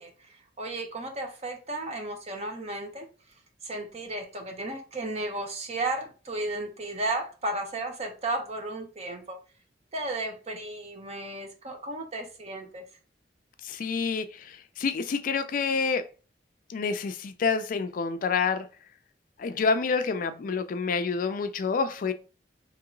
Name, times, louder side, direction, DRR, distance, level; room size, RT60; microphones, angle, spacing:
voice 1, 0.0-3.1 3.6-9.4 9.9-12.9, right 2 dB, 40° right, 0.8 m, -34 dB
voice 2, 13.6-16.0 16.7-18.7 19.4-22.1, left 5 dB, 50° left, 0.4 m, -28 dB
3.0 x 2.9 x 3.7 m
head